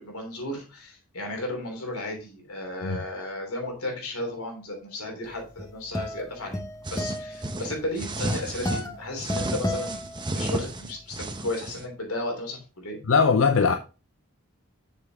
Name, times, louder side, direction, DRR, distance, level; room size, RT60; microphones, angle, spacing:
voice 1, 0.0-6.6 6.9-10.1 10.3-13.0, left 1 dB, 85° left, 3.3 m, -34 dB
sound 1, 5.3-10.8, left 1 dB, 15° left, 0.8 m, -34 dB
sound 2, 6.8-8.9 9.2-11.9, right 1 dB, 20° right, 0.8 m, -32 dB
voice 2, 13.0-13.7, left 5 dB, 65° left, 0.6 m, -20 dB
7.2 x 6.7 x 3.5 m
head